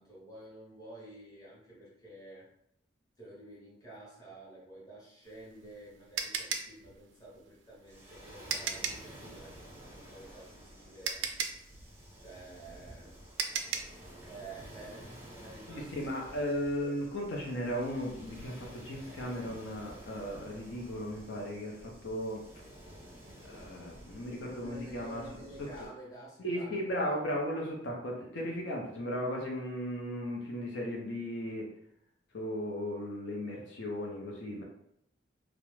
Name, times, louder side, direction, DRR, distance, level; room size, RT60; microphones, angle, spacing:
voice 1, 0.0-2.5 3.2-11.3 11.6-11.7 12.2-13.2 13.8-16.4 24.6-27.3, right 2 dB, 20° left, -7 dB, 1.0 m, -51 dB
sound 1, 5.3-9.1 10.5-10.6 11.0-14.0, right 6 dB, 85° right, 0.3 m, -36 dB
Waves surf, 7.9-25.9, equal, 15° right, 0.5 m, -51 dB
voice 2, 15.7-22.4 23.4-25.7 26.4-31.7 32.3-34.6, equal, 70° left, -2 dB, 0.5 m, -36 dB
2.3 x 2.0 x 3.0 m, 0.72 s
head